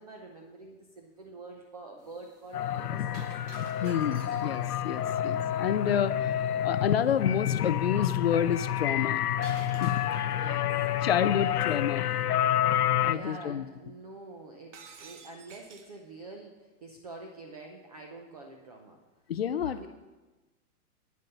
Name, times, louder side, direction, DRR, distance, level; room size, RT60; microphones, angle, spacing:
voice 1, 0.0-3.2 5.1-5.2 10.3-11.5 13.0-19.0 19.6-19.9, right 3 dB, 25° right, 2 dB, 0.6 m, -47 dB
sound 1, 2.0-12.3, left 1 dB, 10° right, 1.4 m, -56 dB
sound 2, 2.5-13.1, left 11 dB, 80° left, 0.7 m, -29 dB
Shatter, 3.1-4.8 9.4-10.5 14.7-16.0, right 5 dB, 50° right, 1.3 m, -50 dB
voice 2, 3.8-6.3 6.6-9.9 11.0-12.0 13.0-13.6 19.3-19.9, left 8 dB, 45° left, 14 dB, 0.4 m, -29 dB
9.5 x 9.4 x 5.5 m, 1.2 s
hypercardioid pair, 165°, 46 cm